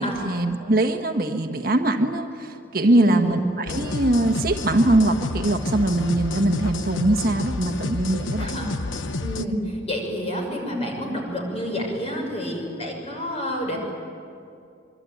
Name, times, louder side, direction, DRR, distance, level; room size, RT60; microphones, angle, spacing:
voice 1, 0.0-8.6, right 1 dB, 50° right, 4 dB, 1.4 m, -22 dB
voice 2, 2.8-3.4 8.1-8.7 9.2-13.8, equal, 30° left, 1 dB, 6.2 m, -28 dB
sound 1, 3.7-9.4, left 2 dB, 85° left, 1.1 m, -30 dB
25.5 x 23.5 x 9.4 m, 2.5 s
head